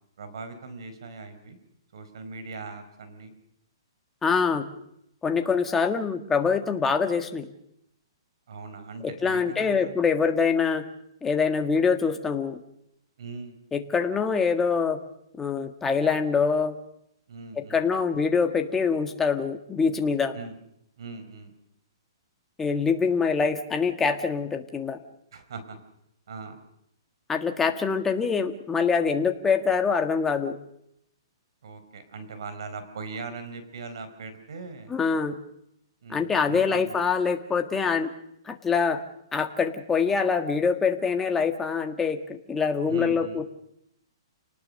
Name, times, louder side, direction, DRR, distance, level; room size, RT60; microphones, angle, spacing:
voice 1, 0.2-1.6 1.9-3.3 8.5-10.0 13.2-13.6 17.3-17.9 20.3-20.6 21.0-21.5 25.3-25.8 26.3-26.6 31.6-35.0 36.0-37.0 42.9-43.4, right 4 dB, 70° right, 10 dB, 4.5 m, -40 dB
voice 2, 4.2-4.7 5.2-7.5 9.0-10.8 11.2-12.6 13.7-15.0 15.4-16.8 17.5-20.3 22.6-25.0 27.3-30.6 34.9-35.4 36.1-38.1 38.4-39.0 39.3-43.4, left 5 dB, 10° left, 5 dB, 1.6 m, -24 dB
29.0 x 19.0 x 6.6 m, 0.77 s
hypercardioid pair, 155°, 3 cm